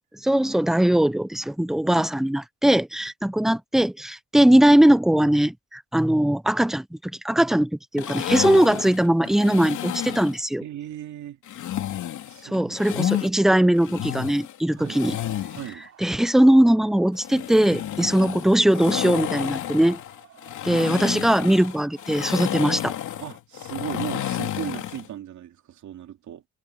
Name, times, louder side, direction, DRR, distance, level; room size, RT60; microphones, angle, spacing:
voice 1, 0.2-6.8 7.2-10.6 12.4-15.2 16.0-20.0 20.6-22.9, right 1 dB, ahead, 0.6 m, -20 dB
sound 1, 8.0-10.4 11.5-13.3 13.7-15.7 17.1-25.1, left 12 dB, 75° left, 3.1 m, -31 dB
voice 2, 10.6-11.4 12.2-12.7 13.2-13.3 14.7-15.0 15.5-15.9 23.2-26.4, right 11 dB, 75° right, 2.5 m, -36 dB
sound 2, 15.2-23.4, right 9 dB, 55° right, 6.3 m, -54 dB
cardioid pair, 160°, 30 cm